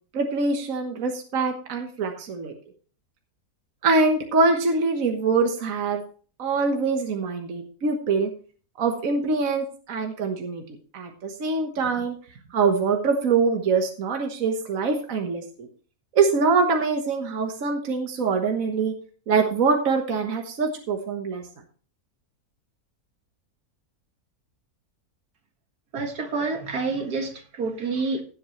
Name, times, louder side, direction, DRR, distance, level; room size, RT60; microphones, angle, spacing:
voice 1, 0.1-2.5 3.8-6.0 6.4-8.3 8.8-10.6 10.9-12.2 12.5-15.7 16.1-18.9 19.3-21.4, right 4 dB, 60° right, 1.7 m, -24 dB
voice 2, 25.9-28.2, right 4 dB, 80° right, 2.3 m, -28 dB
16.5 x 7.8 x 3.1 m
omnidirectional pair, 1.6 m